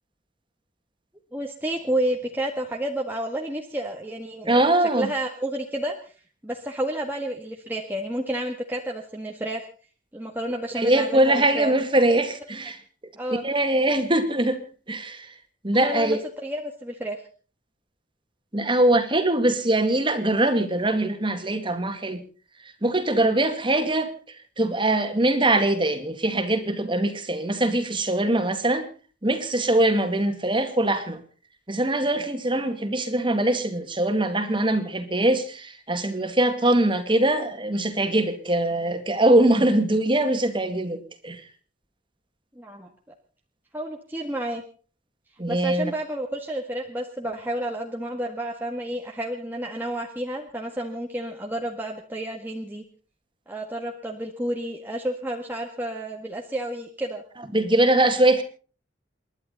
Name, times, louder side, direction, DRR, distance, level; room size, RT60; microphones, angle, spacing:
voice 1, 1.3-4.7 5.0-6.1 6.4-9.6 10.1-11.7 13.2-13.4 15.8-17.2 42.5-42.9 43.7-44.6 45.5-52.8 53.5-57.2, right 1 dB, 10° right, 0 dB, 1.6 m, -30 dB
voice 2, 4.5-5.1 10.8-12.8 13.4-14.6 14.9-15.3 15.6-16.2 18.5-22.2 22.8-24.1 24.6-28.9 29.2-31.2 31.7-41.4 45.4-45.9 57.5-58.4, right 1 dB, 25° right, 7 dB, 2.2 m, -22 dB
28.5 x 11.5 x 4.0 m, 0.39 s
head